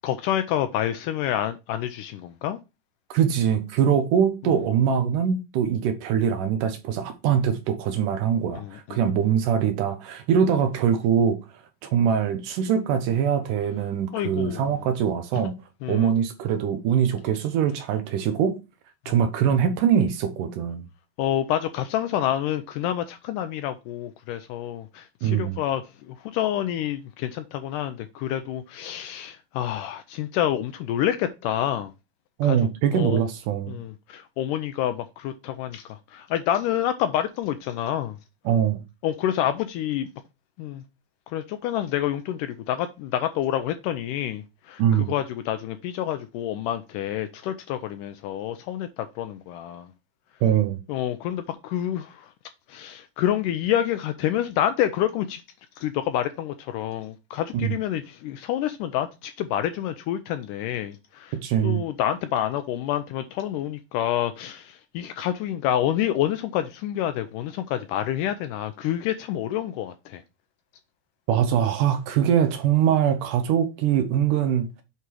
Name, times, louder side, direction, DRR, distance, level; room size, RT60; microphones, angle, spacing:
voice 1, 0.0-2.6 4.4-4.6 8.5-9.0 14.1-14.8 15.3-15.4 15.8-16.1 21.2-31.9 32.4-32.6 32.9-33.2 33.7-38.2 39.0-40.1 40.6-40.8 41.3-49.9 50.9-52.3 52.7-55.4 55.8-61.4 61.6-70.2, left 11 dB, 80° left, 1.9 m, -28 dB
voice 2, 3.1-11.4 11.8-15.6 15.9-18.6 19.1-20.8 25.2-25.6 32.4-33.8 38.5-38.8 44.8-45.1 50.4-50.8 57.5-57.7 61.3-61.9 71.3-74.7, right 8 dB, 75° right, 2.2 m, -23 dB
8.2 x 3.7 x 4.6 m
omnidirectional pair, 4.1 m